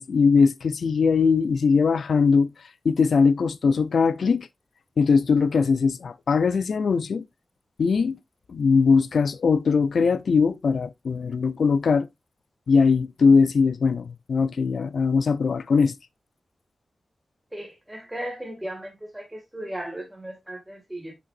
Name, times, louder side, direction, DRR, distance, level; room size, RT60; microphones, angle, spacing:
voice 1, 0.0-2.5 2.8-4.5 5.0-7.2 7.8-8.2 8.5-12.1 12.7-15.9, left 5 dB, 80° left, 0.6 m, -21 dB
voice 2, 17.5-21.1, right 1 dB, 10° right, 2.0 m, -36 dB
6.9 x 5.9 x 2.5 m
wide cardioid pair, 80°, 0 cm